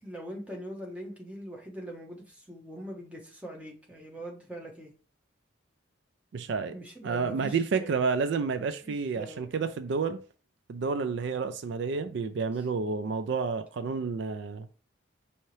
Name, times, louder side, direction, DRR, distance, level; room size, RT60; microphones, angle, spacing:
voice 1, 0.0-4.9 6.7-8.0 8.8-9.5, right 1 dB, 5° right, 0.9 m, -42 dB
voice 2, 6.3-6.8 7.0-10.2 10.7-14.7, right 5 dB, 60° right, 0.3 m, -30 dB
5.4 x 2.8 x 3.1 m
head